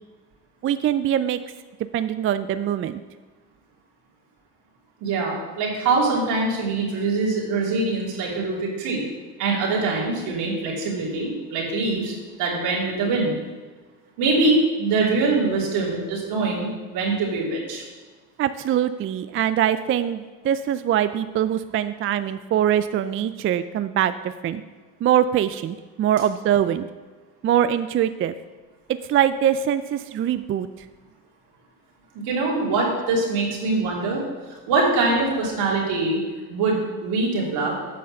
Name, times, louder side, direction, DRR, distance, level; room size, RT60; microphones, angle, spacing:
voice 1, 0.6-1.4 1.9-3.0 18.4-24.6 25.0-26.9 27.4-28.3 29.1-30.7, right 10 dB, 35° right, 12 dB, 0.4 m, -23 dB
voice 2, 5.0-9.0 9.4-13.3 14.2-17.8 32.1-36.2 36.5-37.7, right 3 dB, 80° right, -3 dB, 3.1 m, -23 dB
8.5 x 5.6 x 6.5 m, 1.3 s
supercardioid pair, 85°, 39 cm